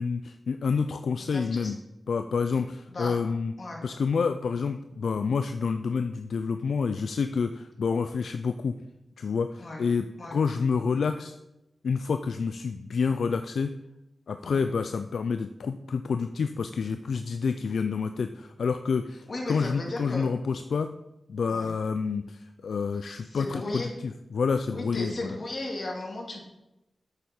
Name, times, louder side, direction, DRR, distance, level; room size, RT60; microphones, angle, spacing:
voice 1, 0.0-1.8 2.1-3.5 3.8-8.8 9.2-10.1 10.3-11.4 11.8-13.7 14.3-20.9 21.3-25.1, left 5 dB, 80° left, 9 dB, 0.3 m, -28 dB
voice 2, 1.2-1.7 2.9-3.1 3.6-3.8 9.6-9.8 10.2-10.4 14.4-14.6 19.3-20.3 21.5-21.7 23.2-23.9 24.7-26.4, left 2 dB, 55° left, -1 dB, 2.5 m, -35 dB
8.2 x 8.1 x 4.3 m, 0.94 s
cardioid pair, 55°, 0 cm